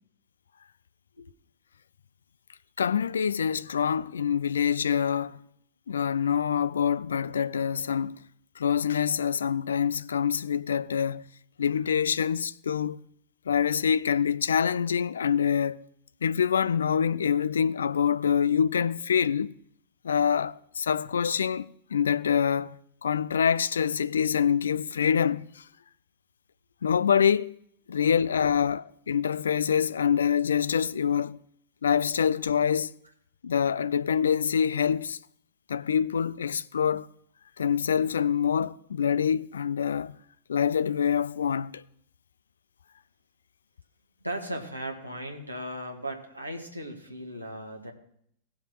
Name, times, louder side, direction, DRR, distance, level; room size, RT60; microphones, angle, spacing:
voice 1, 2.8-5.4 5.9-8.2 8.6-11.3 11.6-13.0 13.5-15.8 16.2-19.5 20.0-22.8 23.0-25.6 26.8-27.5 27.9-31.4 31.8-32.9 33.4-35.2 35.7-37.1 37.6-40.1 40.5-41.8, left 7 dB, 70° left, 0.3 m, -25 dB
voice 2, 44.2-47.9, right 1 dB, 90° right, 1.5 m, -37 dB
18.5 x 7.0 x 3.0 m
figure-of-eight pair, 90°, 0 cm